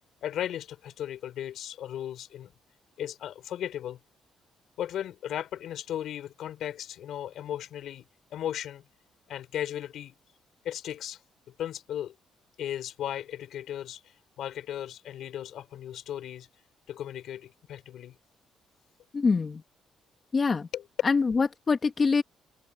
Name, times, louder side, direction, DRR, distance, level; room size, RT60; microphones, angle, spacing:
voice 1, 0.2-2.5 3.0-4.0 4.8-8.0 8.3-8.8 9.3-10.2 10.6-11.2 11.6-12.2 12.6-16.5 16.9-18.2 20.7-20.9, left 11 dB, 75° left, 3.4 m, -36 dB
voice 2, 19.1-19.6 20.3-20.7 21.0-22.2, left 4 dB, 35° left, 1.8 m, -24 dB
cardioid pair, 90°, 0 cm